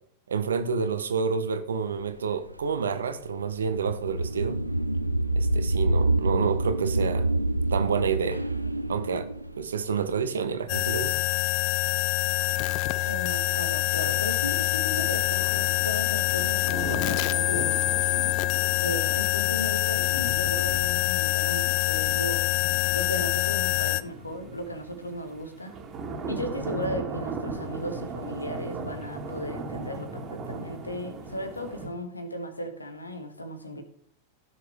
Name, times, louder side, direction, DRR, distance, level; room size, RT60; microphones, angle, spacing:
voice 1, 0.3-4.6 5.4-7.3 7.7-8.4 8.9-9.3 9.6-11.1, right 6 dB, 70° right, 10 dB, 1.0 m, -28 dB
sound 1, 2.0-11.0, right 2 dB, 85° right, 0.5 m, -27 dB
sound 2, 10.7-24.0, left 18 dB, 45° left, 0.4 m, -25 dB
sound 3, 12.3-31.9, right 3 dB, 30° right, 2.1 m, -39 dB
voice 2, 13.1-18.3 18.8-22.5 22.9-25.7 26.3-33.8, equal, 80° left, 8 dB, 1.5 m, -36 dB
15.5 x 6.6 x 3.5 m, 0.63 s
figure-of-eight pair, 90°, 0 cm